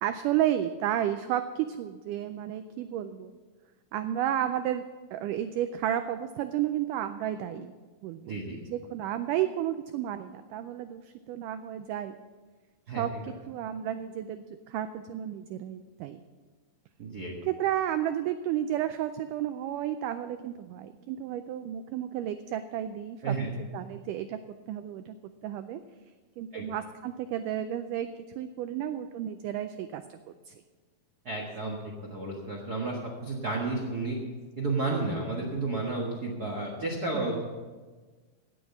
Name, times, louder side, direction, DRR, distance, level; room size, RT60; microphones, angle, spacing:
voice 1, 0.0-3.3 3.9-4.8 5.1-7.7 8.0-8.4 8.7-12.2 13.0-13.1 13.5-16.2 17.5-23.3 23.7-24.4 24.7-25.2 25.4-25.8 26.4-28.1 28.4-30.2 30.5-30.6 37.1-37.4, right 11 dB, 85° right, 10 dB, 1.8 m, -32 dB
voice 2, 8.3-8.6 12.9-13.0 17.0-17.3 23.2-23.5 26.5-26.7 31.2-31.8 32.1-34.2 34.6-37.4, right 3 dB, 65° right, -2 dB, 0.9 m, -32 dB
16.5 x 6.2 x 7.1 m, 1.4 s
omnidirectional pair, 4.3 m